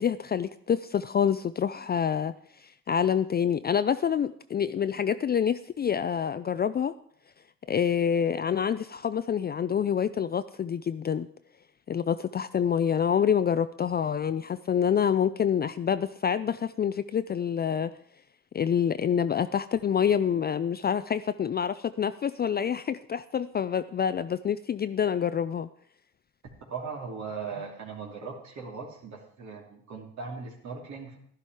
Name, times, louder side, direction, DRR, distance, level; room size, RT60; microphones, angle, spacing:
voice 1, 0.0-6.9 7.7-11.3 11.9-17.9 18.5-25.7, left 8 dB, 35° left, 12 dB, 0.4 m, -27 dB
voice 2, 26.7-31.2, right 5 dB, 65° right, 0 dB, 3.0 m, -39 dB
11.5 x 11.5 x 4.7 m, 0.64 s
cardioid pair, 90°, 30 cm